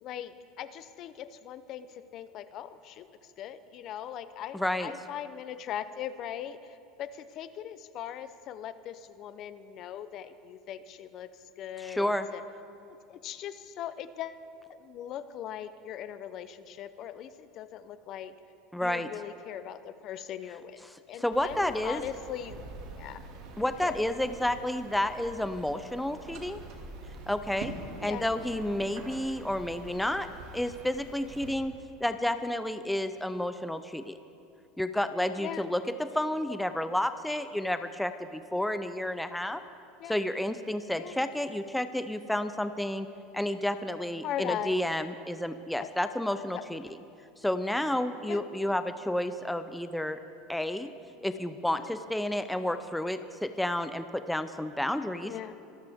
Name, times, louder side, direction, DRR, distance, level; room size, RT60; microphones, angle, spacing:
voice 1, 0.0-11.3 11.6-12.4 12.9-14.4 14.7-18.3 18.8-22.6 22.9-23.2 23.6-24.0 28.0-28.3 35.4-35.7 40.0-40.2 41.0-41.2 44.2-44.8 45.8-45.9 46.5-46.7 48.3-48.4 51.8-52.0 55.2-55.5, left 10 dB, 45° left, 13 dB, 0.6 m, -40 dB
voice 2, 4.5-4.9 11.8-12.3 18.7-19.1 21.2-22.0 23.6-26.6 27.3-27.7 28.0-30.3 30.5-31.7 32.0-34.1 34.8-39.6 40.1-43.1 43.3-46.9 47.4-50.2 50.5-50.9 51.2-55.3, left 1 dB, 5° left, 10 dB, 0.5 m, -31 dB
sound 1, 21.3-31.5, right 3 dB, 65° right, 2.3 m, -45 dB
25.0 x 12.0 x 3.6 m, 2.5 s
supercardioid pair, 130°, 0 cm